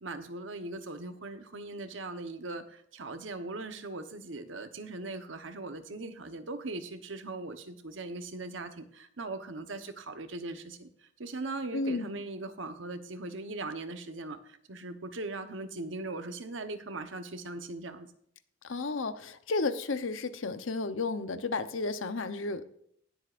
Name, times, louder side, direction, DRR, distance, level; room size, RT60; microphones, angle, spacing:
voice 1, 0.0-18.1, right 2 dB, 70° right, 8 dB, 1.1 m, -40 dB
voice 2, 11.7-12.2 18.6-22.6, left 3 dB, 80° left, 11 dB, 0.8 m, -32 dB
19.5 x 8.0 x 2.5 m, 0.68 s
head